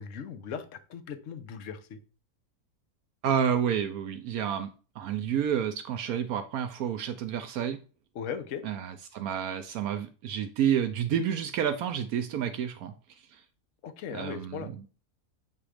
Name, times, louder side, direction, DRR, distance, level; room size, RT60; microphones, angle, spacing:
voice 1, 0.0-2.0 8.1-8.6 13.8-14.7, left 7 dB, 60° left, 10 dB, 1.0 m, -38 dB
voice 2, 3.2-4.7 5.0-7.8 8.6-12.9 14.1-14.8, right 8 dB, 75° right, 9 dB, 1.0 m, -29 dB
7.4 x 3.0 x 4.9 m, 0.36 s
omnidirectional pair, 1.6 m